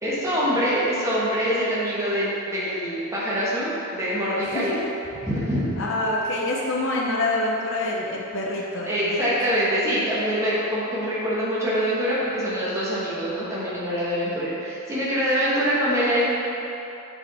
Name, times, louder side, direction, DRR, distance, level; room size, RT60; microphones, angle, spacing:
voice 1, 0.0-4.7 5.3-5.7 8.8-16.3, equal, 15° right, -9 dB, 1.2 m, -24 dB
voice 2, 4.4-4.9 5.8-9.3, left 2 dB, 60° left, -3 dB, 0.7 m, -26 dB
7.0 x 4.9 x 4.0 m, 3.0 s
head